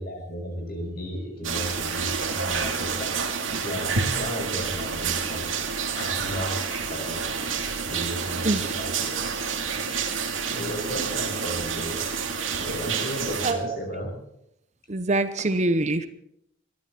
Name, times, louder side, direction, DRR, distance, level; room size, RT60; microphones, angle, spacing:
voice 1, 0.0-3.2 3.6-5.5 5.9-7.4 7.8-9.2 9.9-12.0 12.6-14.1, equal, 50° left, 3 dB, 6.0 m, -34 dB
sound 1, 1.4-13.5, right 6 dB, 80° right, 2.3 m, -29 dB
voice 2, 8.4-8.9 13.4-13.8 14.9-16.1, right 2 dB, 35° right, 11 dB, 0.8 m, -25 dB
21.5 x 14.0 x 4.4 m, 0.77 s
head